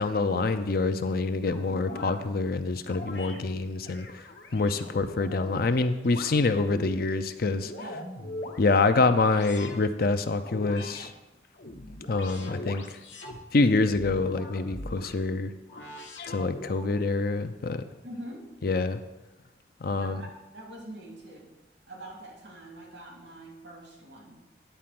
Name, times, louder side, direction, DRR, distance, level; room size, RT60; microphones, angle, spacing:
voice 1, 0.0-4.2 4.5-7.7 8.6-11.1 12.1-13.0 13.5-15.5 16.3-17.8 18.6-19.0 19.8-20.2, left 3 dB, 55° left, 9 dB, 0.6 m, -26 dB
sound 1, 1.5-2.2 2.9-3.4 3.8-5.6 6.1-7.0 7.4-8.6 9.3-9.9 10.4-11.1 11.5-13.4 13.9-15.1 15.7-16.9, left 1 dB, 75° left, 1.2 m, -41 dB
voice 2, 18.0-18.5 19.9-21.5 21.9-24.4, right 1 dB, 75° right, 0 dB, 2.9 m, -44 dB
10.0 x 4.3 x 7.6 m, 1.0 s
head